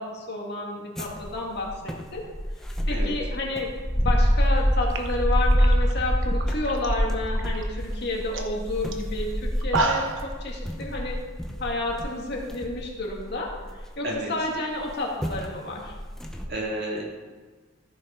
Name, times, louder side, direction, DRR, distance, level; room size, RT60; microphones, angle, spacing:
voice 1, 0.0-2.2 2.9-11.2 11.6-13.5 14.0-15.9, left 2 dB, 55° left, -1 dB, 2.0 m, -31 dB
sound 1, 1.0-14.1 14.8-14.9 15.2-15.4 15.8-16.5, equal, ahead, 0.7 m, -26 dB
sound 2, 4.5-4.6 4.9-6.9 7.2-7.6 8.0-8.1 8.3-8.5 8.9-9.0 9.5-10.3, right 3 dB, 70° right, 1.0 m, -29 dB
voice 2, 16.5-17.0, right 1 dB, 55° right, -3 dB, 2.3 m, -31 dB
14.5 x 5.7 x 4.4 m, 1.4 s
head